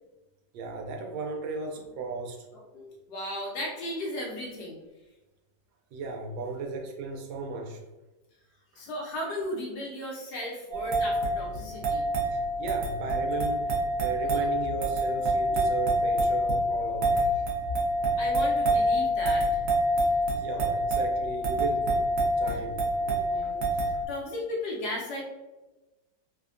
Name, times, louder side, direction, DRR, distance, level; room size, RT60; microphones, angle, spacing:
voice 1, 0.5-2.4 5.9-7.8 8.7-8.9 12.3-17.3 20.3-23.0 23.4-23.5 23.9-24.1, right 3 dB, 85° right, 2 dB, 1.3 m, -36 dB
voice 2, 2.5-4.8 8.8-12.1 14.4-14.5 18.2-19.6 23.1-25.2, left 1 dB, 70° left, -2 dB, 1.0 m, -36 dB
sound 1, 10.7-24.1, right 1 dB, 60° right, 0.9 m, -27 dB
3.3 x 2.1 x 2.4 m, 1.1 s
omnidirectional pair, 2.0 m